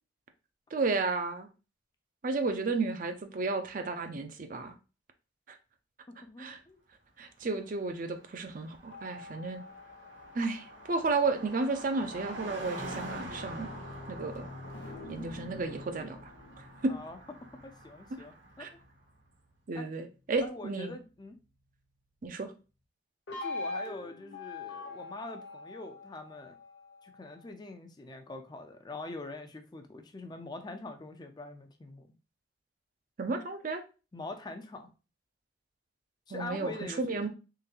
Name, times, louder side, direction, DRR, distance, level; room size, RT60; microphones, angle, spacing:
voice 1, 0.7-1.5 2.2-4.7 5.5-5.6 6.4-6.6 7.2-9.6 10.3-13.7 14.1-14.5 15.1-16.3 16.8-16.9 18.6-18.7 19.7-20.9 22.2-22.5 33.2-33.8 36.3-37.3, right 3 dB, 45° right, 0.5 m, -32 dB
voice 2, 6.1-6.8 16.9-17.2 17.6-18.7 19.7-19.9 20.4-21.4 23.4-26.6 27.0-32.1 34.1-34.9 36.3-37.2, left 2 dB, 20° left, 0.4 m, -44 dB
Car passing by, 7.5-7.6 7.8-18.9, right 1 dB, 75° right, 1.1 m, -46 dB
sound 1, 8.9-11.5 12.6-19.4 23.3-27.5, left 2 dB, 60° left, 1.0 m, -45 dB
3.8 x 3.2 x 2.6 m
head